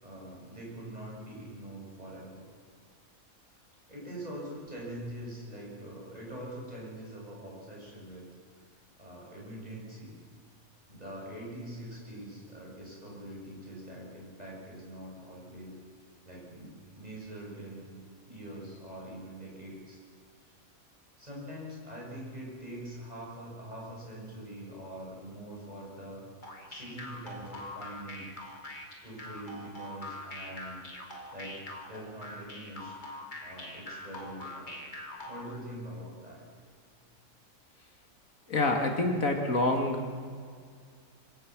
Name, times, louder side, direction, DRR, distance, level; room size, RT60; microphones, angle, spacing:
voice 1, 0.0-2.4 3.5-3.6 3.9-8.2 9.0-10.2 10.9-15.8 16.2-17.9 18.3-20.0 21.2-28.3 29.0-30.9 31.3-33.0 33.4-34.8 35.3-36.5, right 1 dB, 25° right, -4 dB, 7.2 m, -44 dB
sound 1, 26.4-35.6, left 1 dB, 30° left, 3.0 m, -43 dB
voice 2, 38.5-40.0, left 2 dB, 70° left, 3 dB, 2.5 m, -27 dB
26.0 x 17.0 x 6.2 m, 2.1 s
omnidirectional pair, 1.5 m